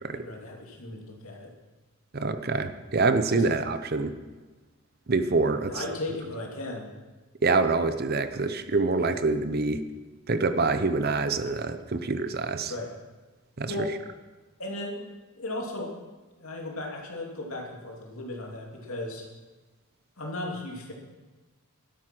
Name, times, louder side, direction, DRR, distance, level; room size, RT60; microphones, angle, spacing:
voice 1, 0.1-1.5 3.3-3.5 5.7-6.9 9.0-9.1 12.7-12.9 13.7-13.9 14.6-15.1 15.4-15.9 16.4-19.3 20.2-20.9, left 2 dB, 70° left, 0 dB, 2.7 m, -36 dB
voice 2, 2.1-4.1 5.1-5.7 7.4-9.8 10.3-12.7 13.6-13.9, right 3 dB, 45° right, 10 dB, 0.7 m, -26 dB
12.0 x 11.0 x 6.1 m, 1.2 s
head